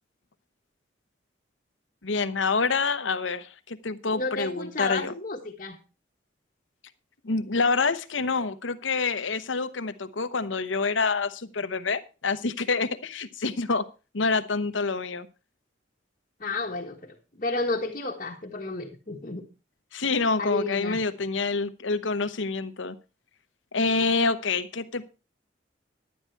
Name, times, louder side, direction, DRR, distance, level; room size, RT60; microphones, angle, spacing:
voice 1, 2.0-5.1 7.2-13.9 14.1-15.3 19.9-23.0 23.7-25.1, left 4 dB, 80° left, 11 dB, 0.9 m, -27 dB
voice 2, 4.1-5.8 16.4-19.4 20.4-21.0, left 2 dB, 40° left, -2 dB, 1.4 m, -31 dB
11.5 x 9.4 x 4.5 m, 0.31 s
head